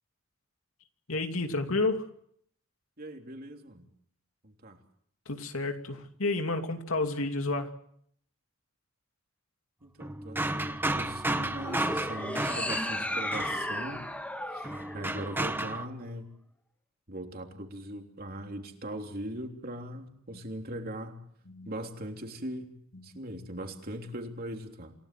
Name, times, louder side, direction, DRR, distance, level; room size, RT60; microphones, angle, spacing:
voice 1, 1.1-2.1 5.3-7.7 20.3-20.4 21.5-21.7 22.9-23.2, left 2 dB, 85° left, 5 dB, 2.7 m, -31 dB
voice 2, 3.0-3.9 4.4-4.8 9.8-14.0 14.5-14.7 14.9-16.3 17.1-21.2 21.7-22.7 23.0-24.9, right 1 dB, 45° right, 3 dB, 3.4 m, -40 dB
sound 1, 10.0-14.1 14.6-15.8, right 1 dB, 10° right, 1.0 m, -33 dB
sound 2, 11.6-15.9, left 1 dB, 5° left, 1.9 m, -35 dB
28.0 x 17.0 x 7.7 m, 0.67 s
head